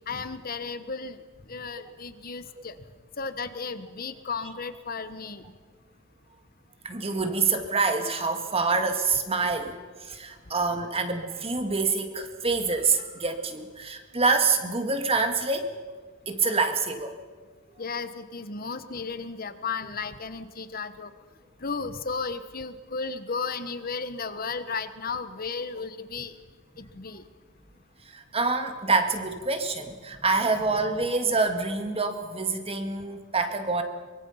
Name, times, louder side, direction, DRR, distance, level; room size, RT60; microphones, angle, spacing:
voice 1, 0.1-1.2 1.5-2.8 3.2-5.4 17.8-21.1 21.6-26.3 26.8-27.2, left 4 dB, 45° left, 11 dB, 1.3 m, -34 dB
voice 2, 6.8-9.7 10.0-15.8 16.3-17.2 28.1-33.8, right 4 dB, 30° right, 6 dB, 1.9 m, -26 dB
24.0 x 22.5 x 5.7 m, 1.4 s
head